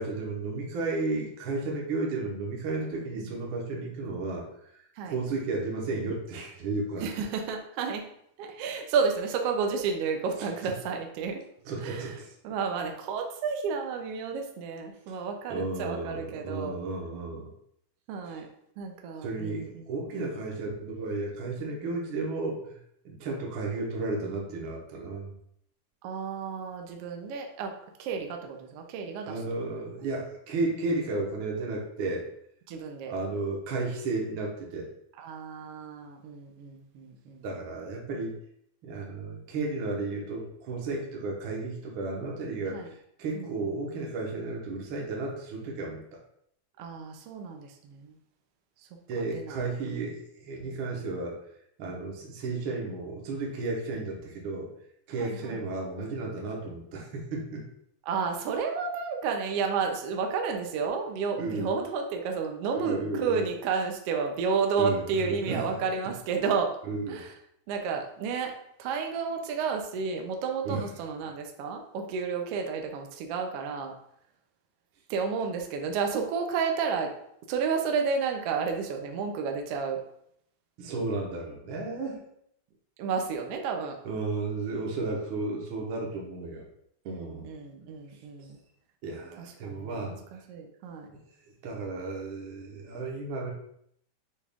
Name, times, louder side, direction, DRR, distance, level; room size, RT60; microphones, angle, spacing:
voice 1, 0.0-4.8 5.0-7.1 10.4-10.7 11.6-12.3 15.1-15.2 15.5-17.5 18.3-18.4 19.2-22.8 23.0-25.3 29.3-32.2 33.1-34.9 37.4-38.4 38.8-46.2 49.1-51.4 51.8-54.7 55.1-57.7 61.4-61.7 62.7-63.4 64.8-65.7 66.8-67.2 70.6-70.8 80.8-82.2 84.0-86.6 87.0-87.5 89.0-90.4 91.1-91.2 91.6-93.5, right 3 dB, 60° right, -1 dB, 1.4 m, -33 dB
voice 2, 7.0-8.1 8.4-11.4 11.8-12.1 12.4-16.8 18.1-18.5 18.8-19.8 26.0-27.7 28.0-29.4 29.7-29.8 32.7-33.1 35.2-37.4 42.7-42.9 43.3-43.5 46.8-48.1 49.3-49.6 50.6-51.1 55.2-55.6 58.1-66.7 67.1-67.3 67.7-68.5 68.8-73.9 75.1-77.1 77.5-80.0 83.0-84.0 87.1-88.6 89.6-91.1, right 5 dB, 80° right, 3 dB, 1.3 m, -31 dB
6.5 x 2.4 x 3.4 m, 0.71 s
omnidirectional pair, 3.3 m